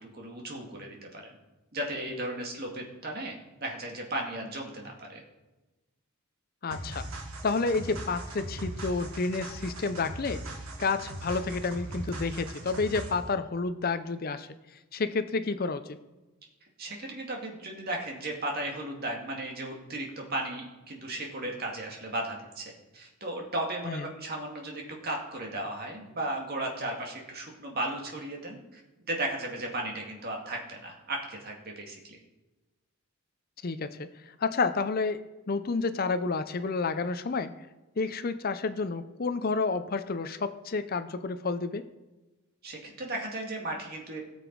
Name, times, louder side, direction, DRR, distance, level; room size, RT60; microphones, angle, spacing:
voice 1, 0.0-1.4 1.7-3.3 3.6-5.2 16.8-28.8 29.1-32.2 42.6-44.2, right 1 dB, 45° right, 1 dB, 2.1 m, -35 dB
voice 2, 6.6-7.1 7.4-10.4 10.8-14.5 14.9-16.0 23.9-24.0 33.6-35.2 35.5-37.5 38.0-41.8, left 4 dB, 40° left, 11 dB, 0.5 m, -30 dB
sound 1, 6.7-13.3, right 1 dB, 75° right, 1.6 m, -39 dB
17.5 x 7.0 x 4.7 m, 1.1 s
head